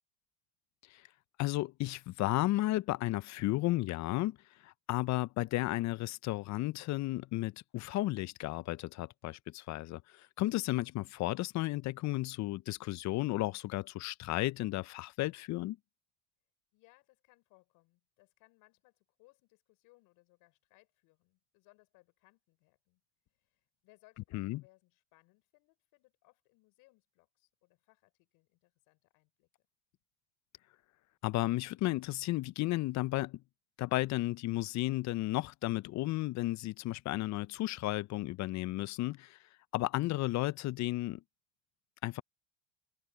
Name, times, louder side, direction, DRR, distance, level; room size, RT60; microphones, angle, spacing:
voice 1, 1.4-15.8 24.3-24.6 31.2-33.4 33.8-39.4 39.7-41.2 42.0-42.2, left 17 dB, 50° left, 0.8 m, -33 dB
voice 2, 16.7-23.0 23.4-29.7, left 23 dB, 65° left, 5.2 m, -67 dB
hypercardioid pair, 85°, 35 cm